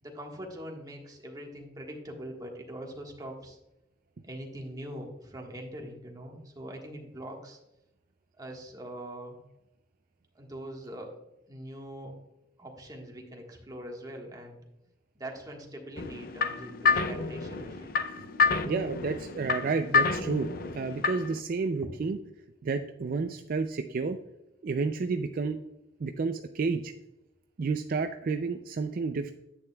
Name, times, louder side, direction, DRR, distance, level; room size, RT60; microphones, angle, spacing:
voice 1, 0.0-3.6 4.2-7.6 8.4-9.4 10.3-11.2 11.5-12.1 12.6-14.6 15.1-17.9 21.8-21.9, right 1 dB, 20° right, 0 dB, 1.4 m, -42 dB
sound 1, 16.0-21.4, left 5 dB, 55° left, 0.5 m, -29 dB
voice 2, 18.6-22.2 22.6-24.2 24.6-25.6 26.0-26.9 27.6-29.3, right 4 dB, 55° right, 7 dB, 0.4 m, -30 dB
9.8 x 8.6 x 2.3 m, 0.89 s
head